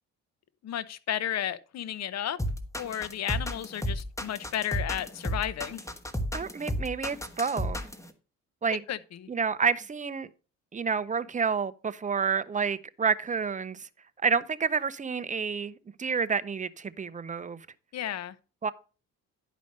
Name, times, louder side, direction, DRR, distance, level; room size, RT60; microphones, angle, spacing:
voice 1, 0.6-2.4 2.8-5.8 8.9-9.3 17.9-18.3, left 10 dB, 60° left, 0.8 m, -33 dB
sound 1, 2.4-8.1, equal, 10° left, 1.2 m, -32 dB
voice 2, 6.3-7.8 8.6-8.8 9.3-10.3 10.7-13.9 14.2-17.7 18.6-18.7, right 5 dB, 25° right, 0.7 m, -29 dB
11.0 x 5.1 x 5.2 m
cardioid pair, 90°, 30 cm